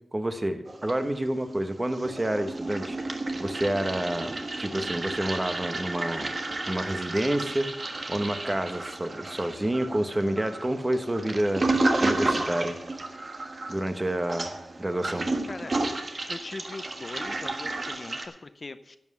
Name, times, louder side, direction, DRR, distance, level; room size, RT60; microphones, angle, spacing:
voice 1, 0.1-3.0 3.4-6.3 6.7-11.7 12.0-12.8 13.7-15.3, right 1 dB, 25° right, 8 dB, 1.3 m, -29 dB
Toilet flush, 0.7-1.5 1.8-18.3, right 2 dB, 50° right, 1.4 m, -32 dB
voice 2, 16.3-19.0, left 3 dB, 50° left, 11 dB, 0.6 m, -40 dB
11.0 x 7.6 x 6.8 m, 0.81 s
cardioid pair, 45°, 0 cm